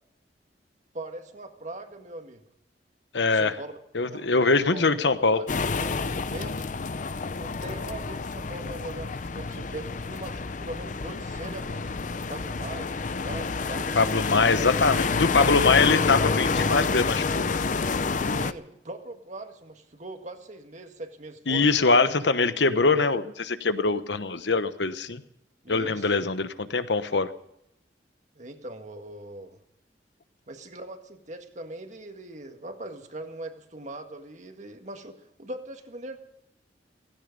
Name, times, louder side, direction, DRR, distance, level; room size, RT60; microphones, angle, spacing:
voice 1, 0.9-2.4 3.3-3.8 4.1-4.5 4.7-4.9 5.3-5.5 5.8-6.8 7.4-14.6 15.1-15.2 18.2-22.2 22.9-23.2 25.6-26.3 28.4-29.6 30.5-36.2, right 2 dB, 45° right, 6 dB, 1.8 m, -41 dB
voice 2, 3.1-3.5 3.9-5.4 14.0-17.4 21.5-25.2 25.7-27.3, left 4 dB, 80° left, 12 dB, 1.1 m, -23 dB
sound 1, 5.5-18.5, left 4 dB, 45° left, 0.6 m, -28 dB
16.5 x 16.0 x 5.3 m, 0.80 s
head